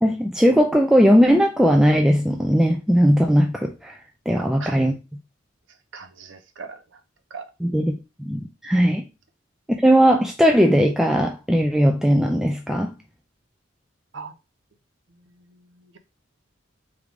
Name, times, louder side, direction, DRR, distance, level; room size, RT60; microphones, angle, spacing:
voice 1, 0.0-4.0 4.3-4.9 7.6-7.9 8.2-9.0 9.7-12.9, equal, 5° right, 0.3 m, -18 dB
voice 2, 4.3-4.9 5.9-7.0 7.3-7.5 14.1-14.3 15.5-15.6, right 5 dB, 80° right, 0.7 m, -39 dB
3.7 x 3.2 x 3.4 m
head